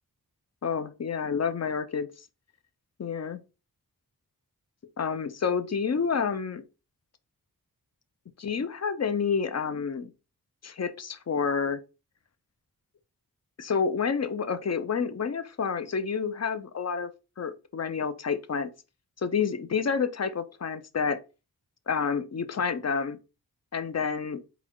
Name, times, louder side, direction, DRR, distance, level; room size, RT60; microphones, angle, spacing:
voice 1, 0.6-2.1 3.0-3.4 5.0-6.6 8.4-10.1 10.6-11.8 13.6-17.1 17.4-18.7 19.2-21.2 21.9-23.2 23.7-24.4, left 6 dB, 45° left, 0.5 m, -29 dB
4.0 x 2.2 x 4.5 m
wide cardioid pair, 55°, 37 cm